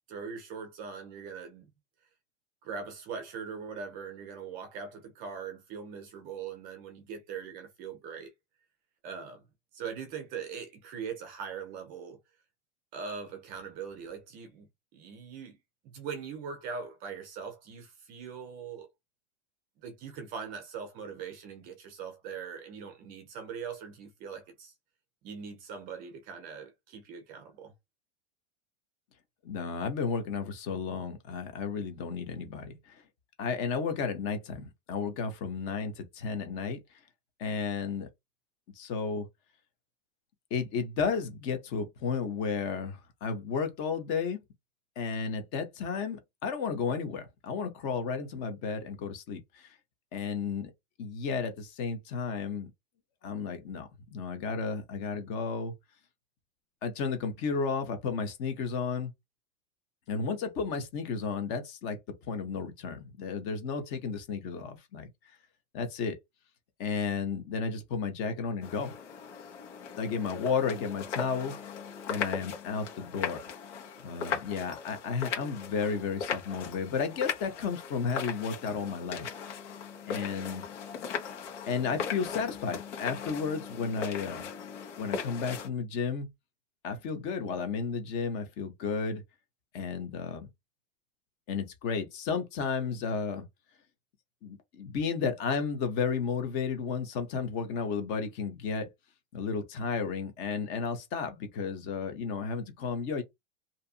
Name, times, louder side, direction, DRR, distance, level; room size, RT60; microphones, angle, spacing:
voice 1, 0.1-1.7 2.6-8.3 9.0-9.4 9.7-12.2 12.9-15.6 15.8-18.9 19.8-24.7 25.2-27.7, right 6 dB, 25° right, 0.5 m, -41 dB
voice 2, 29.4-33.0 33.4-36.8 37.4-38.1 38.8-39.3 40.5-44.4 45.0-49.7 50.1-50.7 51.0-52.7 53.2-55.7 56.8-59.1 60.1-62.0 62.3-65.1 65.7-66.2 66.8-68.9 70.0-71.6 72.1-73.4 74.0-79.3 80.1-80.6 81.7-84.4 85.0-86.3 86.8-89.2 89.7-90.5 91.5-93.5 94.4-98.9 99.3-103.2, left 5 dB, 30° left, 0.7 m, -33 dB
sound 1, 68.6-85.7, left 7 dB, 85° left, 1.2 m, -38 dB
2.7 x 2.5 x 2.4 m
supercardioid pair, 160°, 35 cm